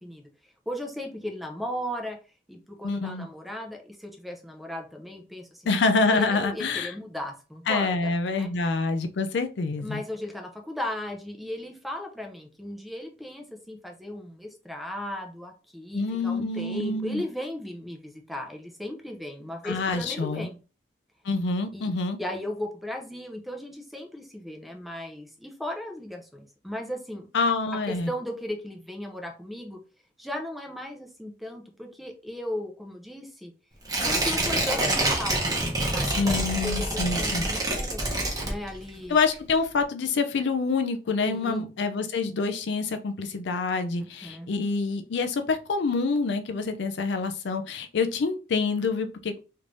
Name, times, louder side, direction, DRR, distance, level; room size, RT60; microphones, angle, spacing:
voice 1, 0.7-2.2 2.5-5.6 6.1-8.5 9.8-20.6 21.7-21.9 22.2-27.3 27.9-29.8 30.2-33.5 34.0-38.1 38.4-39.2 41.2-41.7 44.0-44.5, left 1 dB, ahead, 3 dB, 0.6 m, -36 dB
voice 2, 2.8-3.3 5.7-6.9 7.7-10.0 15.9-17.2 19.6-20.5 21.2-22.2 27.3-28.1 36.1-37.5 39.1-49.4, left 4 dB, 65° left, 8 dB, 0.4 m, -26 dB
Tearing, 33.9-39.0 39.3-39.4, right 1 dB, 20° right, 0.9 m, -26 dB
3.3 x 3.2 x 2.6 m, 0.33 s
head